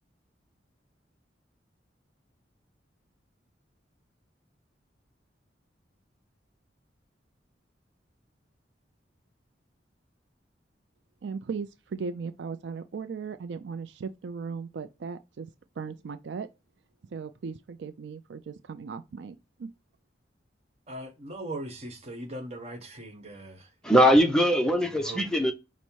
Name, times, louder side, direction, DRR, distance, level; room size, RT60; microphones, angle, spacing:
voice 1, 11.2-15.5 15.8-16.5 17.1-19.7, right 5 dB, 75° right, 0.4 m, -37 dB
voice 2, 20.9-23.7 24.8-25.2, right 1 dB, 35° right, 1.1 m, -39 dB
voice 3, 23.8-25.5, equal, 5° left, 0.6 m, -21 dB
5.4 x 2.1 x 4.5 m
head